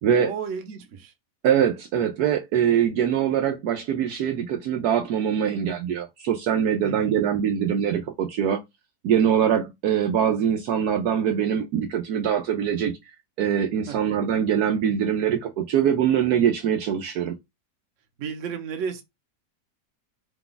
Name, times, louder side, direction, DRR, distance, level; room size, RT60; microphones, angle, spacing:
voice 1, 0.2-1.1 6.8-7.2 13.9-14.0 18.2-19.0, right 6 dB, 55° right, 1.1 m, -33 dB
voice 2, 1.4-8.6 9.0-12.9 13.4-17.3, right 8 dB, 75° right, 1.1 m, -23 dB
4.8 x 2.3 x 3.9 m
omnidirectional pair, 1.8 m